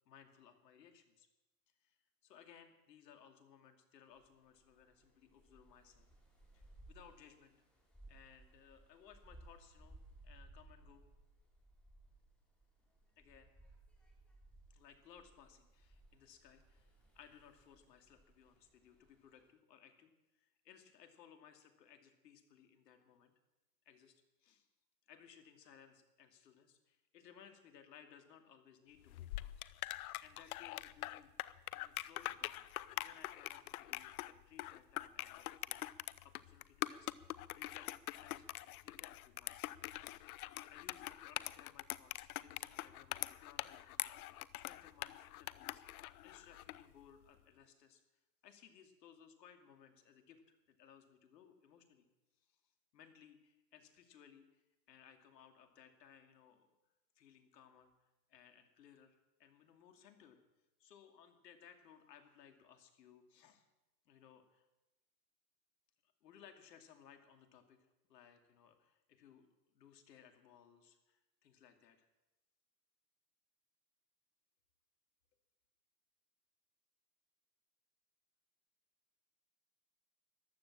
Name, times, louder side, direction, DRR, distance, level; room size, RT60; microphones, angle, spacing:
voice 1, 0.1-1.3 1.8-2.0 2.2-6.1 6.5-7.5 8.1-10.0 10.2-11.0 13.2-13.5 14.7-23.3 23.8-24.1 24.4-24.7 25.1-40.3 40.7-45.8 46.2-48.0 48.4-52.1 52.4-52.5 52.9-56.7 57.2-57.9 58.3-60.4 60.8-63.6 64.1-64.7 66.0-72.1, left 8 dB, 75° left, 6 dB, 2.7 m, -62 dB
sound 1, 4.1-19.5, right 1 dB, ahead, 5.0 m, -62 dB
stirred mocha, 29.1-46.8, left 16 dB, 60° left, 0.8 m, -44 dB
14.5 x 12.0 x 7.5 m, 0.99 s
hypercardioid pair, 130°, 50 cm